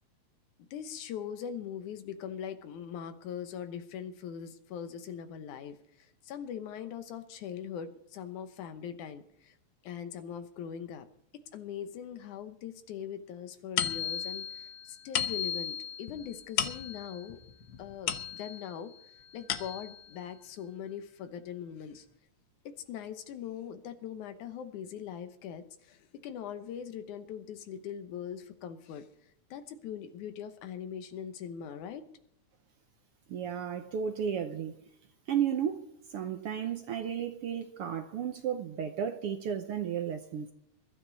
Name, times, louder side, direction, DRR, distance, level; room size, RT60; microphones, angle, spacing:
voice 1, 0.7-9.6 9.8-11.1 11.5-17.4 17.8-18.9 19.3-22.1 22.6-29.1 29.5-32.0, left 8 dB, 85° left, 2.6 m, -41 dB
sound 1, 13.8-18.8 19.2-20.1, left 9 dB, 65° left, 1.3 m, -35 dB
voice 2, 33.3-34.8 35.3-40.5, right 8 dB, 65° right, 1.5 m, -33 dB
22.0 x 12.5 x 4.1 m
omnidirectional pair, 3.4 m